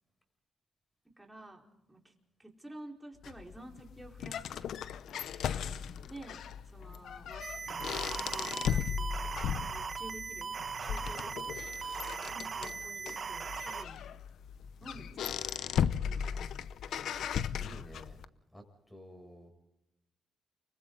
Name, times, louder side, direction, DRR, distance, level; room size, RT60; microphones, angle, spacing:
voice 1, 1.2-2.1 2.4-4.4 5.9-9.4 9.7-10.5 10.8-11.6 12.3-14.2 14.8-15.4 16.1-16.7, right 1 dB, 10° right, 1 dB, 4.4 m, -51 dB
sound 1, 3.2-18.2, left 8 dB, 80° left, 0.7 m, -37 dB
sound 2, 7.4-13.8, right 5 dB, 50° right, 1.3 m, -39 dB
voice 2, 17.3-18.2 18.5-19.5, equal, 10° left, 5 dB, 7.2 m, -52 dB
29.5 x 24.5 x 3.9 m, 0.90 s
cardioid pair, 75°, 0 cm